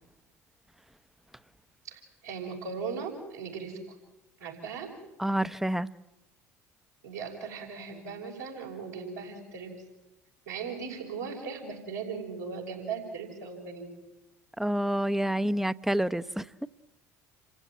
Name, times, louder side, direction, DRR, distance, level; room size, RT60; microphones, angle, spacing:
voice 1, 1.8-3.9 4.4-4.9 7.0-9.7 10.5-13.8, right 5 dB, 85° right, -2 dB, 6.1 m, -38 dB
voice 2, 5.2-5.9 14.6-16.7, right 1 dB, 5° right, 15 dB, 0.8 m, -28 dB
29.0 x 15.5 x 9.3 m, 0.98 s
hypercardioid pair, 60°, 8 cm